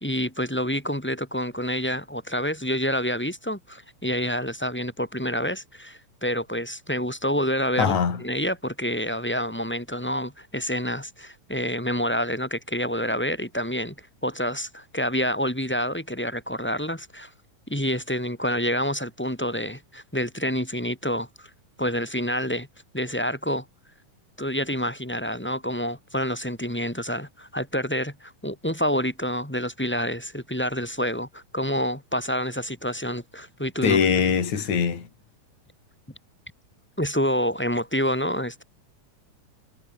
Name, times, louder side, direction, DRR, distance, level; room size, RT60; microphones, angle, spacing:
voice 1, 0.0-13.9 14.2-17.3 17.7-21.5 21.8-22.7 22.9-23.6 24.4-34.0 37.0-38.6, equal, 5° left, 2.5 m, -28 dB
voice 2, 7.8-8.2 33.8-35.1, left 6 dB, 60° left, 4.8 m, -22 dB
omnidirectional pair, 3.7 m